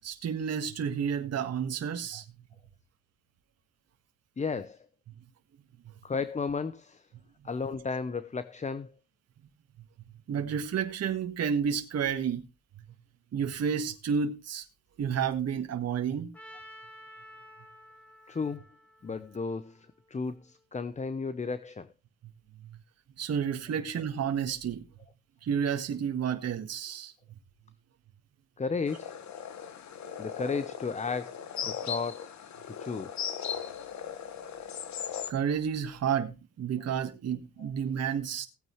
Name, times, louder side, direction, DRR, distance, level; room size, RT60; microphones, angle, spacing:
voice 1, 0.0-2.2 10.3-12.4 13.3-14.6 15.0-16.3 23.2-24.8 25.4-27.1 35.3-38.5, right 7 dB, 55° right, 1.7 m, -30 dB
voice 2, 4.4-4.9 6.0-7.0 7.4-8.9 18.3-18.6 19.0-21.9 28.6-29.1 30.2-31.4 31.7-32.2 32.8-33.2 37.6-37.7, left 4 dB, 25° left, 0.8 m, -34 dB
Trumpet, 16.3-20.4, equal, 5° left, 4.6 m, -52 dB
sound 1, 28.9-35.3, left 8 dB, 65° left, 1.6 m, -38 dB
17.5 x 9.1 x 3.2 m
cardioid pair, 90°, 30 cm